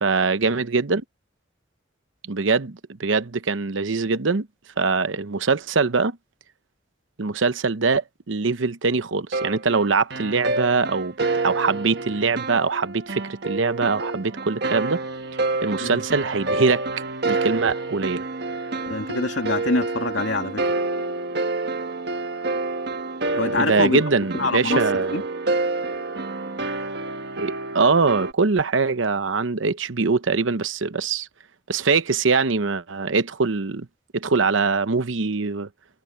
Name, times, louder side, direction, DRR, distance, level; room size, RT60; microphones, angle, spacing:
voice 1, 0.0-1.0 2.3-4.5 4.8-6.2 7.2-11.1 11.4-15.0 15.6-16.8 17.3-18.2 23.6-25.2 27.4-31.3 31.7-33.9 34.1-35.7, right 4 dB, 85° right, 0.9 m, -22 dB
sound 1, 9.3-28.3, right 3 dB, 60° right, 1.5 m, -28 dB
voice 2, 18.9-20.6 23.4-24.0 24.3-24.8 25.1-25.2, left 2 dB, 75° left, 2.4 m, -25 dB
head